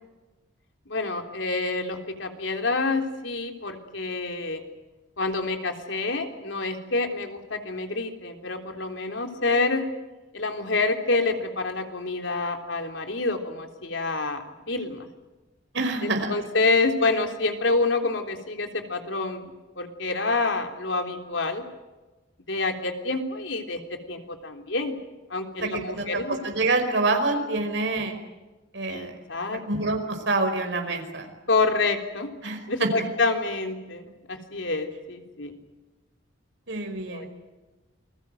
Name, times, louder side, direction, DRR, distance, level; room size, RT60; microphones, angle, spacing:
voice 1, 0.9-4.6 5.2-9.8 10.3-15.1 16.0-21.6 22.5-23.8 24.1-25.0 25.3-26.4 28.9-29.6 31.5-32.3 32.7-35.6 37.1-37.3, left 3 dB, 80° left, 4 dB, 3.5 m, -27 dB
voice 2, 15.7-16.4 25.6-28.2 28.7-29.1 29.5-31.3 32.4-33.1 36.7-37.3, right 2 dB, 70° right, 4 dB, 5.1 m, -27 dB
28.5 x 21.5 x 7.9 m, 1.1 s
head